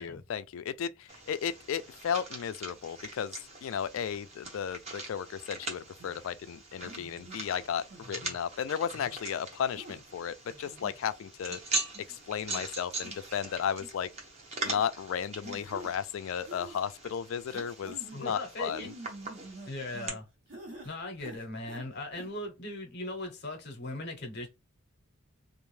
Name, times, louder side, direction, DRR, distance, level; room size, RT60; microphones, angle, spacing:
voice 1, 0.0-3.3 3.6-11.6 12.1-14.1 14.6-18.8, left 8 dB, 70° left, 0.3 m, -34 dB
sound 1, 1.1-20.1, right 2 dB, 30° right, 0.7 m, -42 dB
sound 2, 6.0-6.2 6.8-7.4 7.9-8.4 8.9-9.2 9.7-10.0 10.5-11.0 11.5-11.6 11.9-12.2 12.5-12.6 13.0-13.4 13.7-13.9 14.6-14.8 15.4-15.9 16.4-16.8 17.5-18.2 18.7-20.2 20.5-20.9 21.2-21.9 22.1-22.3, right 1 dB, 60° right, 1.0 m, -47 dB
voice 2, 18.1-18.9 19.6-20.3 20.8-24.5, left 1 dB, 55° left, 0.7 m, -39 dB
2.5 x 2.2 x 3.1 m
head